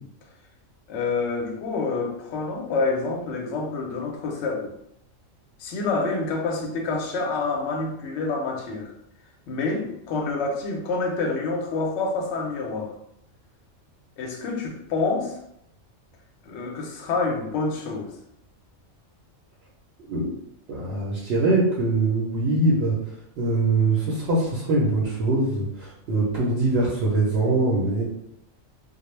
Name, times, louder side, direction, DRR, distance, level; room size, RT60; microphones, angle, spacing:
voice 1, 0.9-4.7 5.6-8.9 9.5-12.9 14.2-15.4 16.4-18.1, left 3 dB, 65° left, 1 dB, 0.8 m, -27 dB
voice 2, 20.7-23.0 23.4-28.0, right 2 dB, 65° right, -4 dB, 0.7 m, -23 dB
2.2 x 2.0 x 3.0 m, 0.76 s
omnidirectional pair, 1.4 m